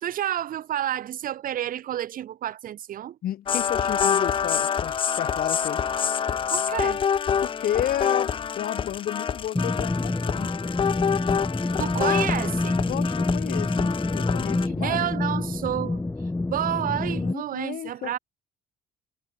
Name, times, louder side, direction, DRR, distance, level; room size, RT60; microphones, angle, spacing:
voice 1, 0.0-3.2 6.5-7.0 11.8-12.8 14.8-16.0 16.5-18.2, right 11 dB, 55° right, 1.3 m, -29 dB
voice 2, 3.2-5.8 7.4-10.6 12.8-15.1 17.1-18.2, left 11 dB, 60° left, 3.8 m, -32 dB
sound 1, 3.5-14.7, left 7 dB, 30° left, 0.5 m, -27 dB
sound 2, 9.5-17.3, left 2 dB, 10° left, 1.6 m, -27 dB
cardioid pair, 110°, 17 cm